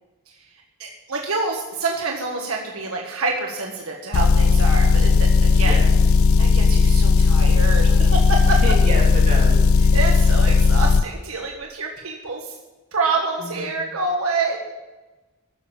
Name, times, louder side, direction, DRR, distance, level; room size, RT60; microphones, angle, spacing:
voice 1, 0.8-5.8 6.4-8.6 9.9-12.5 12.9-14.6, right 3 dB, 75° right, 0 dB, 1.6 m, -27 dB
Motor vehicle (road) / Engine, 4.1-11.0, left 4 dB, 65° left, 0.4 m, -15 dB
voice 2, 5.5-5.9 8.4-9.6 13.5-13.7, right 1 dB, 35° right, -2 dB, 3.3 m, -29 dB
12.0 x 7.2 x 9.0 m, 1.1 s
head